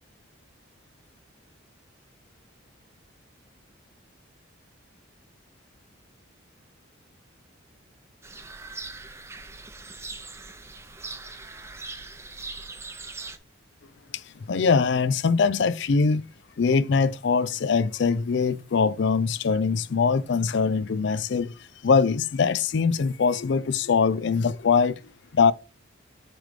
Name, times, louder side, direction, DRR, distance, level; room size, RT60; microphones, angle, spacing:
sound 1, 8.2-13.4, right 3 dB, 15° right, 0.5 m, -40 dB
voice 1, 14.5-16.2 16.6-21.5 21.8-25.0 25.3-25.5, left 5 dB, 60° left, 0.4 m, -22 dB
7.6 x 3.3 x 4.8 m
head